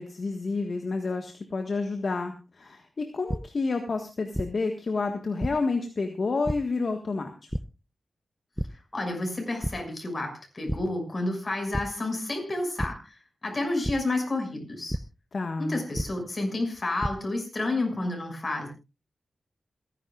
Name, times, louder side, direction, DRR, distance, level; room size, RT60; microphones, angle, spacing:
voice 1, 0.0-7.5 15.3-15.8, left 3 dB, 55° left, 4 dB, 1.6 m, -29 dB
sound 1, 3.3-3.4 4.3-4.5 5.4-5.5 6.4-6.5 7.5-7.6 8.6-8.7 9.1-9.3 9.6-9.7 10.7-10.8 11.7-11.8 12.8-12.9 13.8-13.9 14.9-15.0 16.0-16.1 16.7-17.1, equal, 5° right, 0.6 m, -28 dB
voice 2, 8.9-15.0 15.6-18.7, left 2 dB, 35° left, 3 dB, 6.4 m, -30 dB
28.0 x 11.0 x 2.5 m, 0.29 s
wide cardioid pair, 80°, 0 cm